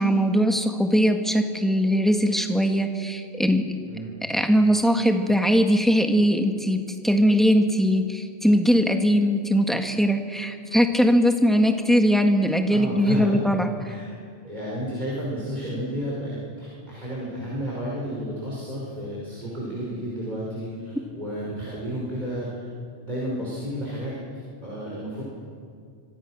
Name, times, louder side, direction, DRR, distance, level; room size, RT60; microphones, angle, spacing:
voice 1, 0.0-3.6 4.3-6.8 7.0-13.7, equal, ahead, 4 dB, 1.7 m, -20 dB
voice 2, 12.7-13.5 13.8-14.2 14.4-22.7 23.0-24.1 24.6-25.2, equal, 40° right, -6 dB, 5.7 m, -32 dB
26.0 x 25.5 x 6.4 m, 2.2 s
omnidirectional pair, 1.2 m